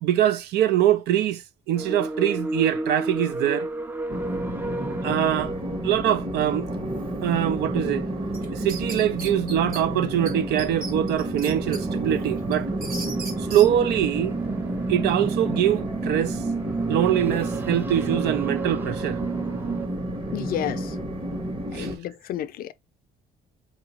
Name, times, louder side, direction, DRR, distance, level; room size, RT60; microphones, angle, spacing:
voice 1, 0.0-3.7 5.0-5.5 5.8-6.7 7.2-8.1 8.5-12.7 13.4-14.3 14.9-16.4 16.9-19.2 21.7-21.9, right 11 dB, 75° right, 0.5 m, -23 dB
sound 1, 1.7-19.9, right 4 dB, 10° right, 0.4 m, -32 dB
Train, 4.1-22.0, right 1 dB, 30° right, 1.3 m, -31 dB
sound 2, 8.3-9.8 10.3-10.4 10.6-11.8 12.2-13.7, right 4 dB, 60° right, 1.3 m, -36 dB
voice 2, 20.3-20.9 21.7-22.7, left 11 dB, 60° left, 0.4 m, -31 dB
4.7 x 2.9 x 2.8 m
cardioid pair, 110°, 17 cm